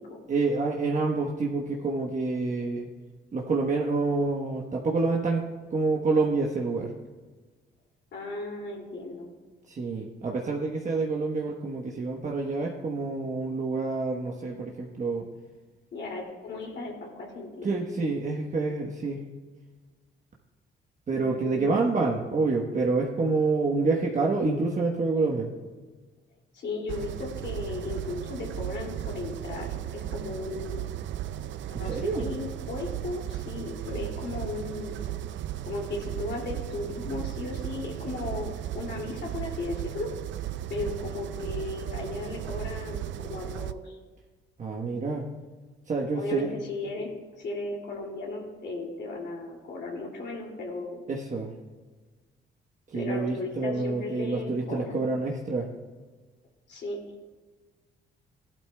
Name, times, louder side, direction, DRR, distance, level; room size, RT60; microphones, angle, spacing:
voice 1, 0.3-2.9 3.3-6.9 9.7-15.3 17.6-19.2 21.1-25.5 31.9-32.2 44.6-45.2 45.9-46.5 51.1-51.5 52.9-55.7, right 3 dB, 40° right, -1 dB, 1.1 m, -27 dB
voice 2, 8.1-9.3 15.9-17.8 21.1-21.9 26.5-30.8 31.8-35.0 35.6-40.1 40.7-44.0 46.1-47.1 47.4-51.0 52.9-55.0 56.7-57.0, left 2 dB, 60° left, -1 dB, 2.5 m, -36 dB
sound 1, 26.9-43.7, right 12 dB, 70° right, 0.5 m, -36 dB
15.0 x 12.0 x 2.3 m, 1.4 s
cardioid pair, 90°, 20 cm